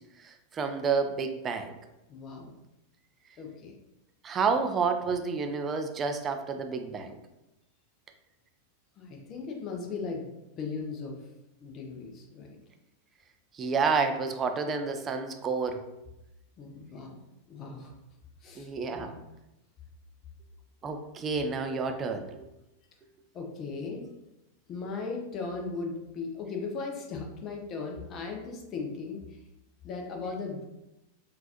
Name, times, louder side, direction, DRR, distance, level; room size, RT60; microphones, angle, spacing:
voice 1, 0.2-1.8 4.2-7.2 13.5-15.9 18.6-19.2 20.8-22.4, right 5 dB, 25° right, 6 dB, 0.3 m, -30 dB
voice 2, 2.1-2.5 3.4-3.7 9.0-10.3 10.6-11.2 11.6-12.6 16.6-17.2 17.5-17.9 18.4-19.3 23.3-24.1 24.7-29.4 29.8-30.6, left 4 dB, 30° left, 1 dB, 0.6 m, -37 dB
3.8 x 2.4 x 2.8 m, 0.94 s
figure-of-eight pair, 90°, 0 cm